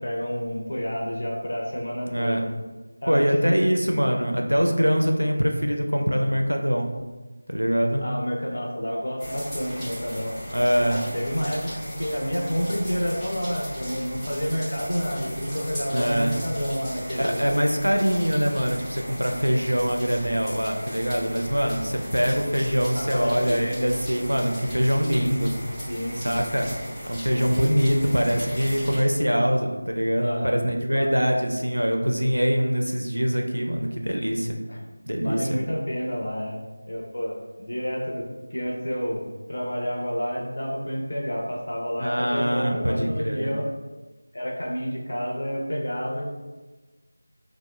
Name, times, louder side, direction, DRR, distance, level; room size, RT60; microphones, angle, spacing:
voice 1, 0.0-2.4 3.0-3.6 8.0-10.3 10.9-17.4 22.9-23.8 25.9-26.4 30.2-30.6 30.9-31.1 34.7-34.8 35.2-36.6 36.9-43.7 44.3-46.2, equal, 50° left, -2 dB, 0.6 m, -29 dB
voice 2, 2.1-2.4 3.1-6.9 7.5-8.1 10.5-11.0 15.9-16.4 17.2-25.5 26.1-26.7 27.1-34.6 35.1-35.6 42.0-43.5, equal, 85° right, 3 dB, 0.4 m, -23 dB
sound 1, 9.2-29.0, equal, 5° left, 0.4 m, -37 dB
3.0 x 2.0 x 2.9 m, 1.2 s
figure-of-eight pair, 170°, 0 cm